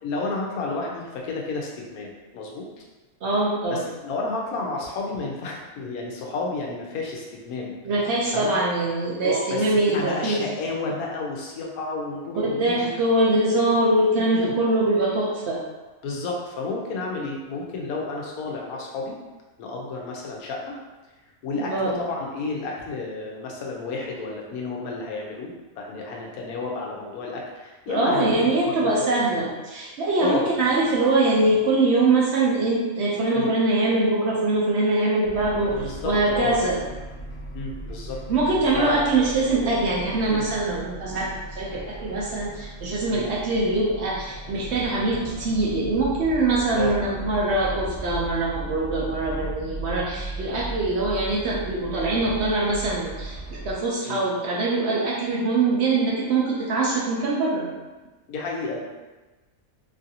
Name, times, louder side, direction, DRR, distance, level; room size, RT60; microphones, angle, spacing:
voice 1, 0.0-2.7 3.7-7.8 8.3-8.5 9.2-12.9 14.3-14.5 16.0-19.2 19.6-20.8 21.4-29.0 30.2-30.5 33.3-33.5 35.7-36.6 37.5-38.2 38.7-39.1 40.3-40.5 43.1-43.3 46.8-47.0 54.0-54.2 58.3-58.8, left 3 dB, 85° left, -1 dB, 1.1 m, -31 dB
voice 2, 3.2-3.9 7.8-10.4 12.4-15.6 21.6-22.0 27.9-36.8 38.3-53.4 53.6-57.7, right 2 dB, 65° right, -5 dB, 0.7 m, -23 dB
sound 1, 35.2-53.7, right 2 dB, 45° left, 0.4 m, -37 dB
3.1 x 2.5 x 2.7 m, 1.2 s
omnidirectional pair, 1.5 m